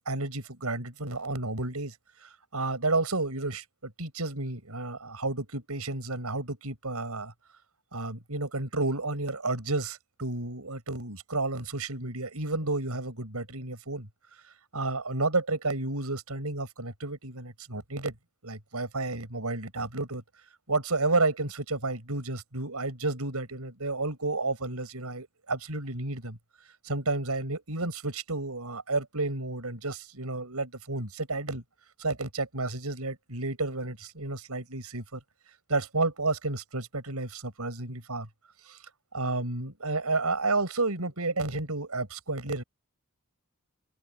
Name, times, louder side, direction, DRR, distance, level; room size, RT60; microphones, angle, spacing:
voice 1, 0.0-7.3 7.9-14.1 14.7-18.1 18.4-20.2 20.7-26.4 26.8-31.6 32.0-35.2 35.7-38.3 38.7-38.8 39.1-42.6, right 2 dB, 90° right, 5.6 m, -31 dB
open air
head